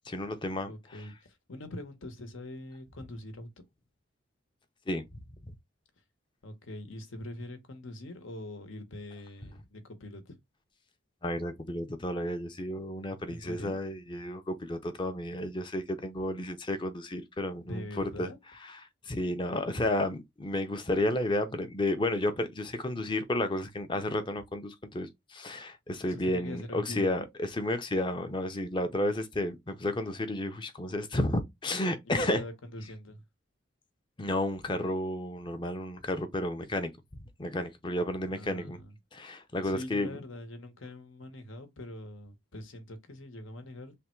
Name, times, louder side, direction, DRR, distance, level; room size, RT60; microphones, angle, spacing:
voice 1, 0.1-1.1 4.9-5.5 11.2-18.3 18.6-32.4 34.2-38.8 39.1-40.2, left 1 dB, 25° left, 0.5 m, -32 dB
voice 2, 0.6-3.5 6.4-10.4 13.3-13.8 17.6-18.4 26.1-27.1 32.2-33.2 38.3-38.9 39.6-43.9, left 1 dB, 80° left, 1.0 m, -43 dB
3.4 x 2.2 x 4.3 m
head